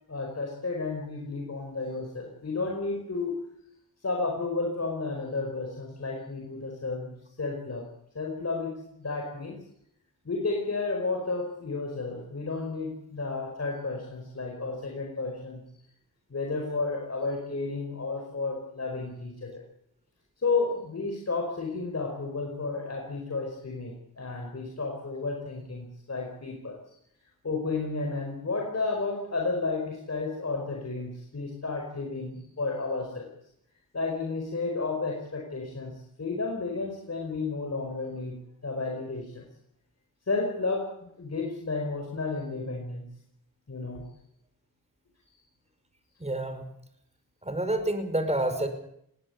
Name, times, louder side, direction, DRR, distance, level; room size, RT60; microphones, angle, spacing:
voice 1, 0.1-3.3 4.0-7.9 8.1-9.6 10.2-15.6 16.3-19.6 20.4-26.8 27.4-33.3 33.9-39.5 40.3-43.1 43.7-44.1, left 3 dB, 45° left, 2 dB, 5.1 m, -32 dB
voice 2, 46.2-46.6 47.4-48.7, right 1 dB, 20° right, 8 dB, 5.5 m, -28 dB
21.5 x 16.5 x 8.2 m, 0.73 s
cardioid pair, 55°, 35 cm